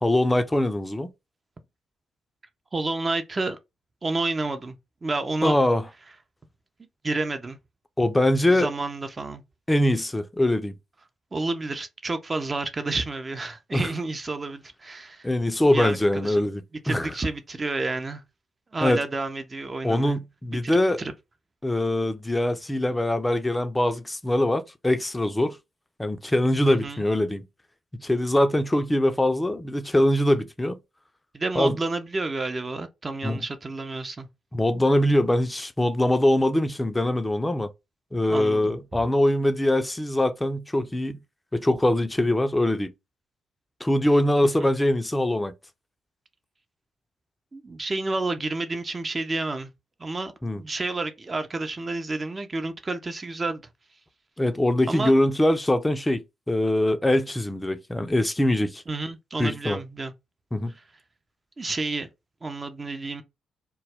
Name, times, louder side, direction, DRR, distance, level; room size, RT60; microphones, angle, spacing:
voice 1, 0.0-1.1 5.4-5.9 8.0-8.7 9.7-10.8 13.7-13.9 15.2-17.1 18.8-19.0 19.8-21.0 21.6-25.6 26.0-27.4 28.0-30.8 31.5-31.8 33.2-33.4 34.5-37.7 38.1-41.2 41.5-42.9 43.8-45.5 50.4-50.6 54.4-58.8 59.4-59.8 60.5-60.7, left 1 dB, 15° left, 0.5 m, -23 dB
voice 2, 2.7-3.6 4.0-4.8 5.0-5.6 7.0-7.6 8.5-9.4 11.3-15.3 15.7-16.4 16.8-18.2 18.7-20.2 20.6-20.7 21.0-21.1 26.7-27.0 31.3-34.3 38.3-39.0 47.5-49.7 50.0-53.6 54.9-55.1 58.9-60.1 61.6-62.1 62.4-63.2, right 3 dB, 35° right, 0.6 m, -30 dB
2.2 x 2.1 x 3.4 m
hypercardioid pair, 40°, 0 cm